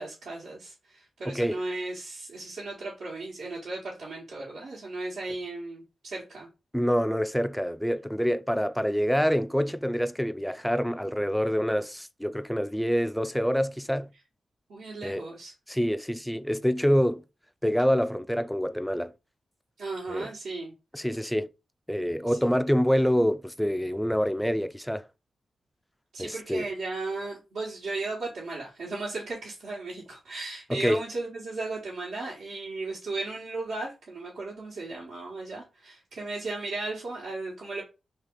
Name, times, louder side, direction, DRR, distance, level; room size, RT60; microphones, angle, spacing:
voice 1, 0.0-6.5 14.7-15.5 19.8-20.7 22.3-22.5 26.1-37.8, right 3 dB, 85° right, 1.2 m, -36 dB
voice 2, 1.3-1.6 6.7-14.1 15.0-15.2 15.7-17.2 17.6-19.1 20.1-20.3 20.9-21.5 21.9-25.1 26.2-26.7 30.7-31.0, equal, 5° left, 0.3 m, -26 dB
3.0 x 2.9 x 3.7 m
cardioid pair, 50°, 0 cm